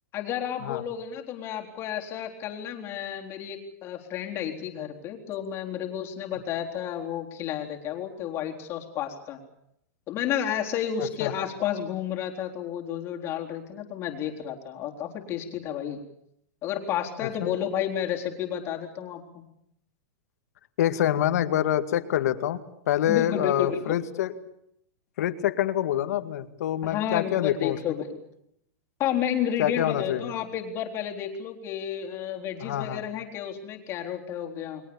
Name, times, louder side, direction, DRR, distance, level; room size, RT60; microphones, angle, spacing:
voice 1, 0.1-9.4 10.1-16.0 16.6-19.4 23.1-24.0 26.8-28.2 29.0-34.8, left 9 dB, 25° left, 1 dB, 3.9 m, -31 dB
voice 2, 11.0-11.3 17.2-17.5 20.8-22.6 22.9-24.3 25.2-27.8 29.6-30.3 32.6-33.1, left 11 dB, 65° left, 9 dB, 2.2 m, -26 dB
30.0 x 22.0 x 7.1 m, 0.75 s
supercardioid pair, 155°, 9 cm